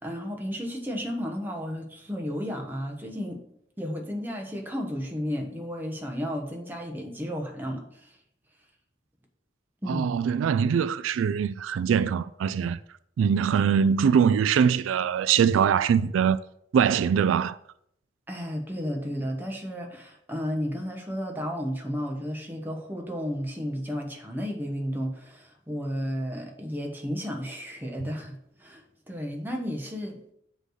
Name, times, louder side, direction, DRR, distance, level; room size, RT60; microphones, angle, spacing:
voice 1, 0.0-3.4 3.8-8.2 9.8-10.1 18.3-30.3, equal, 10° right, 1.2 m, -33 dB
voice 2, 9.9-12.8 13.2-16.4 16.7-17.6, right 7 dB, 90° right, 0.3 m, -22 dB
7.5 x 3.3 x 6.4 m
head